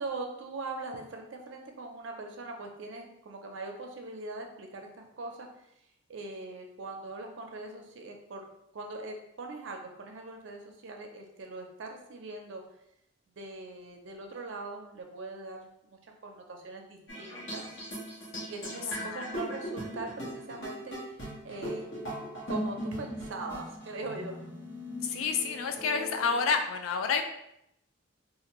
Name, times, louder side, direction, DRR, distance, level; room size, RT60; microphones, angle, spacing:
voice 1, 0.0-5.5 6.1-8.5 8.7-12.6 13.4-17.8 18.5-21.2 21.4-21.9 22.5-24.5, right 2 dB, 65° right, 2 dB, 0.5 m, -41 dB
sound 1, 17.1-26.5, equal, 60° left, 1.1 m, -39 dB
voice 2, 25.0-27.2, left 5 dB, 85° left, 5 dB, 0.4 m, -29 dB
2.5 x 2.4 x 2.9 m, 0.79 s
head